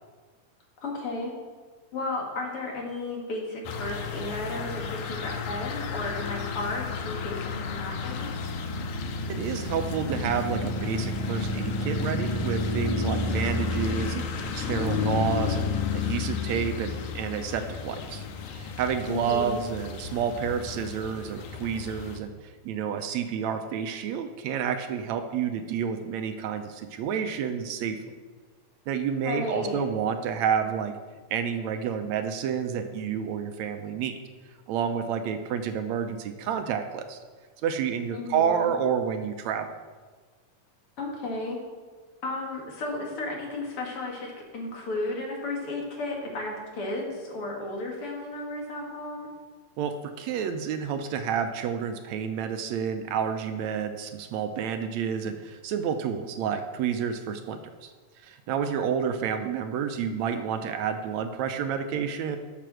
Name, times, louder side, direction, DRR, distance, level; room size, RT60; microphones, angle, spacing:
voice 1, 0.8-1.3 1.9-8.3 19.1-19.6 29.2-29.8 38.1-38.7 41.0-41.6 42.2-49.3, left 2 dB, 50° left, 0 dB, 2.7 m, -34 dB
sound 1, 3.6-22.2, left 4 dB, 85° left, 2.4 m, -31 dB
voice 2, 9.3-15.7 15.9-18.2 18.6-22.3 22.6-28.0 28.9-30.9 31.3-34.2 34.7-37.2 37.6-39.7 49.8-57.9 58.2-62.4, right 7 dB, 75° right, 8 dB, 1.9 m, -29 dB
12.5 x 6.8 x 6.3 m, 1.4 s
omnidirectional pair, 3.3 m